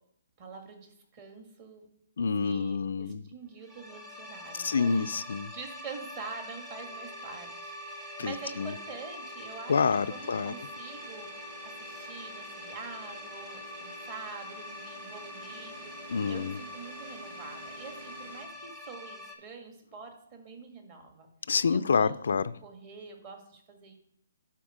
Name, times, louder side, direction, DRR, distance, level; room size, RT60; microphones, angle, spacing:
voice 1, 0.4-1.9 2.4-5.1 5.5-9.8 10.1-22.2 22.6-23.9, right 4 dB, 30° right, 3 dB, 1.7 m, -46 dB
voice 2, 2.2-3.2 4.6-5.5 8.2-8.7 9.7-10.5 16.1-16.6 21.5-22.5, left 5 dB, 65° left, 14 dB, 0.4 m, -27 dB
sound 1, 3.6-19.3, left 1 dB, 5° right, 0.9 m, -44 dB
sound 2, 6.8-18.5, right 3 dB, 55° right, 2.5 m, -50 dB
11.0 x 4.3 x 4.9 m, 0.76 s
hypercardioid pair, 165°, 0 cm